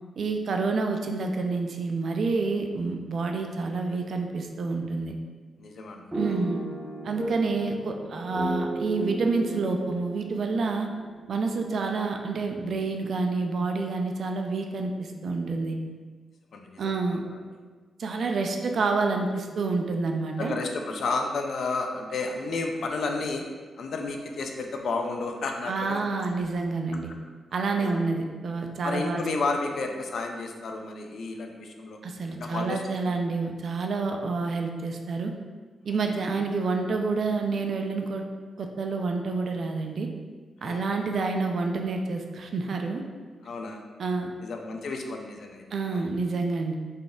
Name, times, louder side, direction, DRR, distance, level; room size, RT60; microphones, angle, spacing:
voice 1, 0.2-5.2 6.1-6.6 7.0-10.9 11.3-15.8 16.8-17.2 18.0-20.5 25.7-27.1 27.5-29.2 32.0-35.3 35.8-38.2 38.6-40.1 40.6-43.0 44.0-44.3 45.7-46.7, right 3 dB, 55° right, 3 dB, 0.4 m, -28 dB
voice 2, 5.6-6.0 16.5-17.2 20.4-23.4 23.8-26.1 27.8-27.9 28.8-32.0 32.3-32.8 40.6-40.8 41.2-41.3 43.4-43.8 44.4-46.1, left 3 dB, 60° left, 3 dB, 0.5 m, -32 dB
sound 1, 6.1-12.1, right 1 dB, 10° right, 0.6 m, -35 dB
4.1 x 3.3 x 3.6 m, 1.5 s
wide cardioid pair, 160°, 0 cm